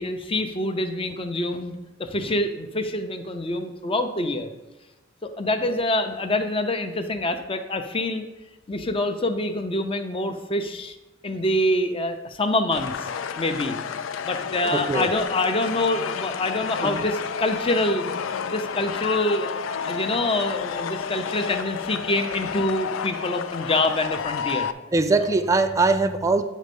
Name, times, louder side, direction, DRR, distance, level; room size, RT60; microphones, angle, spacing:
voice 1, 0.0-4.5 5.2-8.3 8.7-10.9 11.2-13.1 13.4-13.8 14.2-18.0 18.4-19.6 19.9-24.7, left 1 dB, 30° left, 7 dB, 0.7 m, -26 dB
sound 1, 12.7-24.7, left 7 dB, 80° left, 0.4 m, -31 dB
voice 2, 14.7-15.1 16.8-17.0 24.9-26.4, right 3 dB, 15° right, 7 dB, 0.4 m, -21 dB
9.2 x 4.2 x 5.3 m, 1.0 s
head